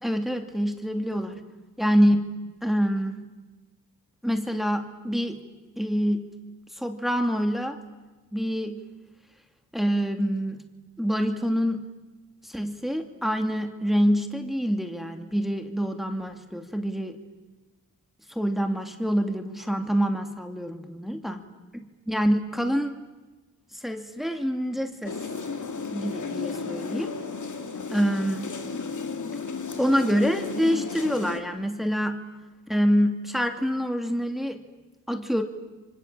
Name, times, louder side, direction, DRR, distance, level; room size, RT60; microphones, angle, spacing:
voice 1, 0.0-1.4 1.8-2.3 2.6-3.2 4.2-5.4 5.8-6.3 6.7-7.8 8.3-8.8 9.7-10.6 11.0-11.8 12.4-17.2 18.3-21.4 22.1-23.0 23.7-25.2 25.9-27.1 27.9-28.5 29.8-32.2 32.7-34.6 35.1-35.4, equal, ahead, 6 dB, 2.6 m, -26 dB
sound 1, 25.0-31.4, left 4 dB, 55° left, 2.3 m, -34 dB
29.5 x 25.0 x 7.5 m, 1.2 s
cardioid pair, 55°, 35 cm